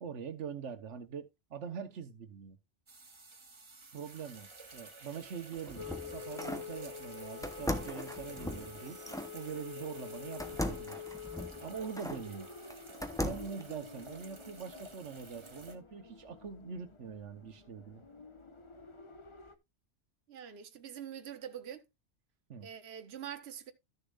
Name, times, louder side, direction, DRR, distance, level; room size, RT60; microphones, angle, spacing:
voice 1, 0.0-2.6 3.9-9.0 9.3-11.0 11.6-12.5 13.2-18.0 22.5-22.7, right 7 dB, 90° right, 1.4 m, -43 dB
sound 1, 2.9-15.7, right 3 dB, 25° right, 1.1 m, -52 dB
sound 2, 5.4-6.7 7.4-9.3 10.4-12.2 12.7-13.6, left 1 dB, 5° left, 0.8 m, -38 dB
sound 3, 5.8-19.6, left 7 dB, 30° left, 0.9 m, -48 dB
voice 2, 20.3-21.8 22.6-23.7, right 9 dB, 65° right, 1.2 m, -44 dB
13.5 x 6.7 x 2.4 m
omnidirectional pair, 1.2 m